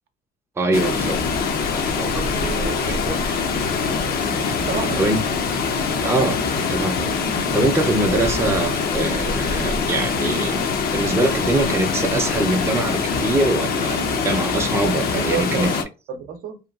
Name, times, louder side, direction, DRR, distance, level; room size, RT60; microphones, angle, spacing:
voice 1, 0.6-1.2 1.7-3.4 4.3-4.6 5.0-5.2 6.0-10.6 10.9-15.7, right 2 dB, 15° right, 0.5 m, -23 dB
Water, 0.7-15.8, left 5 dB, 65° left, 0.6 m, -23 dB
voice 2, 2.4-2.8 4.5-5.2 15.1-16.6, right 7 dB, 65° right, 0.6 m, -30 dB
2.9 x 2.3 x 2.3 m
cardioid pair, 110°, 17 cm